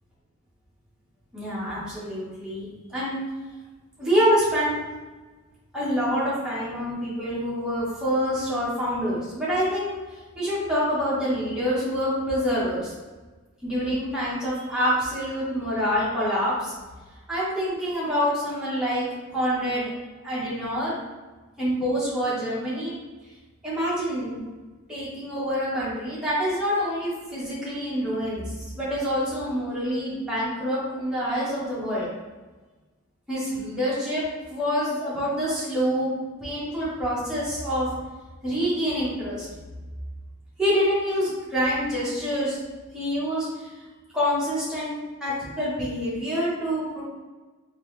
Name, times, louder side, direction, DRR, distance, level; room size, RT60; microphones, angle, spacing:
voice 1, 1.3-3.2 4.0-4.8 5.7-10.0 10.3-12.9 13.6-16.7 17.3-19.0 19.3-19.9 20.2-20.9 21.6-23.0 23.6-24.4 24.9-32.1 33.3-36.1 36.4-37.9 38.4-39.5 40.6-42.6 42.9-43.7 44.1-47.0, equal, 5° right, -9 dB, 1.2 m, -26 dB
4.0 x 2.7 x 3.2 m, 1.3 s
head